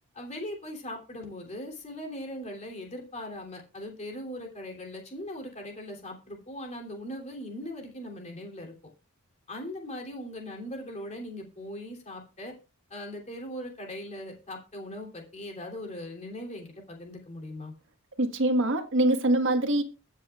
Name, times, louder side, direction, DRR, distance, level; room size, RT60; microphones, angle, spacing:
voice 1, 0.1-8.7 9.5-12.5 12.9-17.7, left 1 dB, 30° left, 3.0 m, -39 dB
voice 2, 18.2-19.8, right 1 dB, 60° right, 1.5 m, -24 dB
21.5 x 7.3 x 2.4 m
head